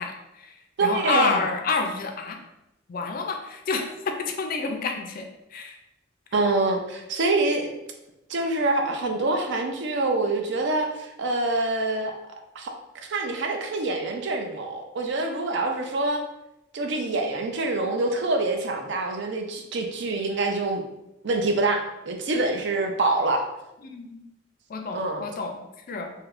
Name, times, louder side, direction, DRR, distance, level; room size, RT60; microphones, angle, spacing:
voice 1, 0.0-2.4 2.9-5.8 23.8-24.2 24.7-26.1, left 4 dB, 45° left, 4 dB, 0.3 m, -29 dB
voice 2, 0.8-1.4 6.3-7.7 8.3-12.1 12.6-12.7 13.1-16.2 16.7-20.8 21.2-23.5 24.9-25.2, right 2 dB, 60° right, 3 dB, 0.4 m, -25 dB
3.3 x 2.7 x 2.5 m, 0.91 s
head